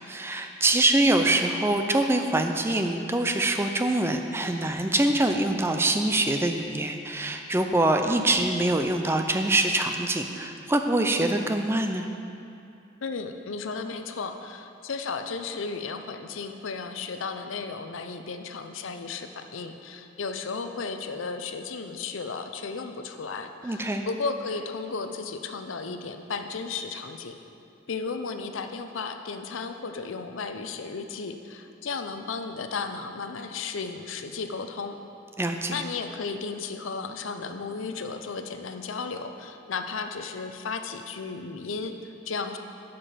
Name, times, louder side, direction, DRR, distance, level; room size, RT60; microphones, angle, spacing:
voice 1, 0.0-12.1 23.6-24.0 35.4-35.8, right 2 dB, 10° right, 5 dB, 0.4 m, -24 dB
voice 2, 13.0-27.4 27.9-35.0 35.7-42.6, left 4 dB, 85° left, 7 dB, 0.6 m, -34 dB
11.0 x 5.1 x 5.7 m, 2.6 s
head